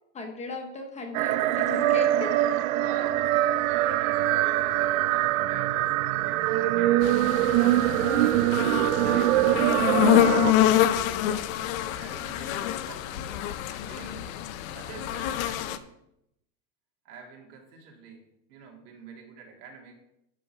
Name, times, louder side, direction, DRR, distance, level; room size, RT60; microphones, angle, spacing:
voice 1, 0.1-2.4 9.1-9.2, left 2 dB, 15° left, 4 dB, 0.8 m, -36 dB
sound 1, 1.1-10.5, right 14 dB, 65° right, 0.5 m, -23 dB
voice 2, 2.7-8.0 8.9-10.6 10.9-11.3 11.9-13.4 13.7-14.4 14.7-16.0 17.0-19.9, right 5 dB, 80° right, 0 dB, 2.9 m, -45 dB
sound 2, 7.0-15.8, left 12 dB, 60° left, 0.8 m, -26 dB
11.5 x 5.6 x 4.9 m, 0.81 s
supercardioid pair, 160°, 45 cm